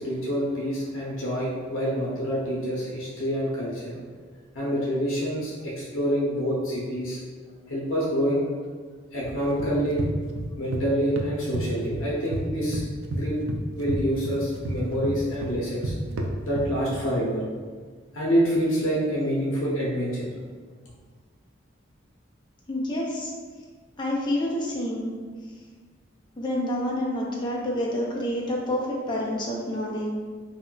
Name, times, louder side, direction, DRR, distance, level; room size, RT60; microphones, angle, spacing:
voice 1, 0.0-4.0 4.5-7.2 7.7-8.4 9.1-10.0 10.6-12.8 13.1-13.4 13.7-15.9 16.4-17.4 18.1-20.3, equal, 85° left, -5 dB, 0.6 m, -27 dB
sound 1, 9.2-10.8 11.2-12.4 12.7-17.0, right 1 dB, 75° right, 0.4 m, -31 dB
voice 2, 22.7-23.3 24.0-25.1 26.4-30.1, left 1 dB, 25° left, -3 dB, 0.4 m, -28 dB
2.3 x 2.1 x 3.7 m, 1.5 s
head